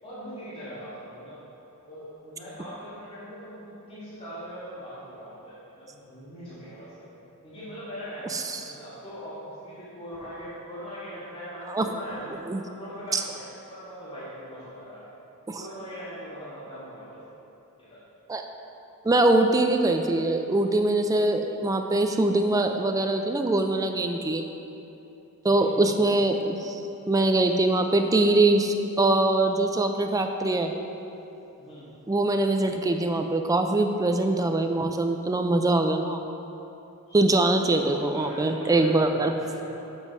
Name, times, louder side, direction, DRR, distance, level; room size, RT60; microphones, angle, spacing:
voice 1, 0.0-1.4 1.8-7.1 7.4-12.3 12.6-15.1 15.6-17.2 17.8-18.0 25.4-26.1 31.6-31.9 37.1-37.2 37.7-39.9, equal, 25° left, -12 dB, 2.0 m, -41 dB
voice 2, 19.0-24.4 25.4-26.8 27.1-30.7 32.1-36.2 37.1-39.3, right 2 dB, 15° right, 5 dB, 0.3 m, -23 dB
7.1 x 6.1 x 5.4 m, 3.0 s
head